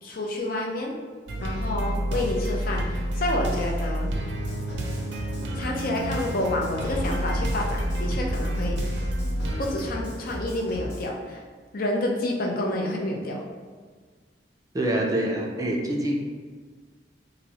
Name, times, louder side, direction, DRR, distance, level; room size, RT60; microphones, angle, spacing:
voice 1, 0.0-0.9 1.4-4.1 5.5-8.8 9.6-11.4 11.7-13.4, left 1 dB, 55° left, 0 dB, 0.6 m, -29 dB
sound 1, 1.3-9.9, equal, 75° right, 0.6 m, -29 dB
sound 2, 4.3-11.1, equal, 70° left, 1.2 m, -36 dB
voice 2, 14.7-16.2, right 1 dB, 20° right, -1 dB, 0.4 m, -25 dB
3.0 x 2.6 x 4.0 m, 1.5 s
head